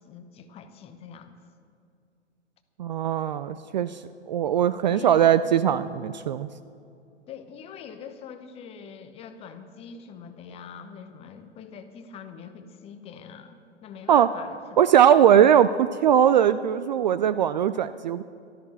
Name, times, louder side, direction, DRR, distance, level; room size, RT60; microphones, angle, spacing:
voice 1, 0.0-1.4 4.9-5.4 7.3-14.9, left 6 dB, 15° left, 9 dB, 0.8 m, -43 dB
voice 2, 2.8-4.0 4.3-6.5 14.1-14.3 14.8-18.2, right 9 dB, 40° right, 13 dB, 0.4 m, -20 dB
14.0 x 13.0 x 6.3 m, 2.5 s
figure-of-eight pair, 115°, 35 cm